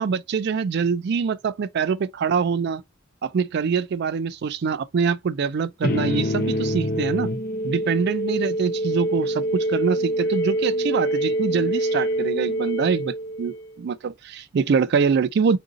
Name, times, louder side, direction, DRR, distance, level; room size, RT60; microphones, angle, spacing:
voice 1, 0.0-2.8 3.2-7.3 7.6-15.6, right 6 dB, 55° right, 0.3 m, -24 dB
sound 1, 5.8-13.7, right 1 dB, 45° left, 0.6 m, -25 dB
3.7 x 2.6 x 2.4 m
head